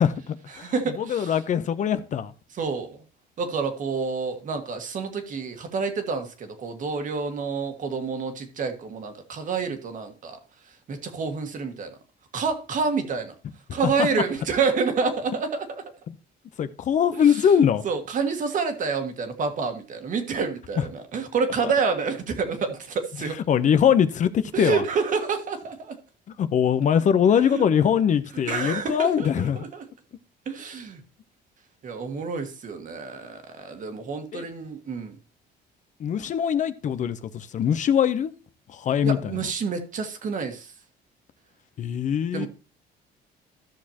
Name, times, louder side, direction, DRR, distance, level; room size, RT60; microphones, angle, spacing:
voice 1, 0.0-2.3 13.8-14.1 16.6-17.8 23.5-24.8 26.4-29.6 34.3-34.4 36.0-38.3 38.7-39.2 41.8-42.5, left 8 dB, 50° left, 0.7 m, -22 dB
voice 2, 0.5-1.4 2.5-3.0 3.4-10.4 10.9-12.0 12.3-13.4 13.7-15.8 17.1-23.4 24.5-26.0 27.5-27.6 28.5-29.9 30.5-31.0 31.8-35.2 39.0-40.7 42.3-42.5, right 5 dB, 50° right, 1.7 m, -28 dB
13.5 x 6.4 x 2.9 m
cardioid pair, 110°, 17 cm